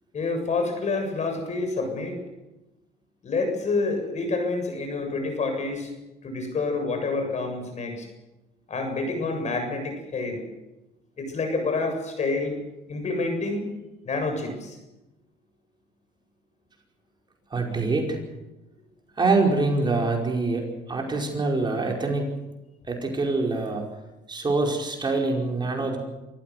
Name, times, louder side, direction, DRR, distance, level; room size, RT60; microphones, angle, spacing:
voice 1, 0.1-2.2 3.2-5.9 6.2-8.1 8.7-10.4 11.2-12.5 12.9-13.7 14.0-14.8, left 3 dB, 45° left, 5 dB, 7.4 m, -28 dB
voice 2, 17.5-18.2 19.2-22.3 22.9-23.9 24.3-26.0, right 3 dB, 25° right, 1 dB, 5.1 m, -25 dB
27.0 x 15.5 x 8.0 m, 1.0 s
cardioid pair, 110°, 17 cm